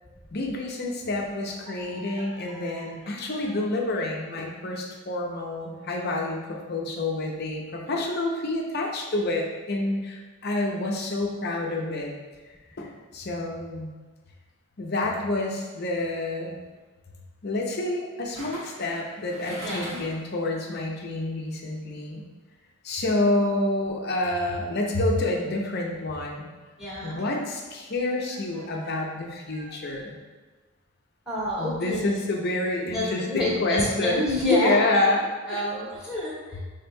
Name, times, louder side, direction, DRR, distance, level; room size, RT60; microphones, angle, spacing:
voice 1, 0.3-12.1 12.8-13.9 14.8-16.6 17.4-22.2 22.8-26.5 27.0-30.2 31.6-35.7, left 2 dB, 45° left, 0 dB, 0.6 m, -28 dB
voice 2, 1.7-3.2 19.6-20.0 26.8-27.2 29.6-29.8 31.3-32.2 32.8-35.0 35.5-36.6, left 1 dB, 5° right, -10 dB, 1.4 m, -29 dB
sound 1, 15.8-16.0 18.3-20.3 20.7-20.8, right 1 dB, 60° right, 1.5 m, -41 dB
6.8 x 3.4 x 2.2 m, 1.3 s
head